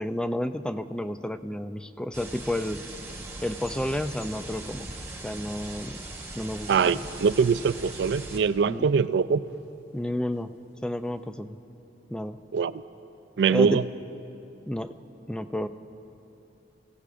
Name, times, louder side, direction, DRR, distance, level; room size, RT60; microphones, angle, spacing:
voice 1, 0.0-2.8 3.4-4.9 5.2-7.0 8.7-8.9 9.9-10.5 10.8-11.6 12.1-12.4 13.5-13.8 14.7-14.9 15.3-15.7, left 1 dB, 5° left, 10 dB, 0.3 m, -31 dB
sound 1, 2.1-8.4, right 2 dB, 15° right, 1.2 m, -40 dB
voice 2, 6.7-9.4 12.5-12.8 13.4-13.8, right 6 dB, 75° right, 15 dB, 0.3 m, -23 dB
23.5 x 16.5 x 2.5 m, 2.9 s
head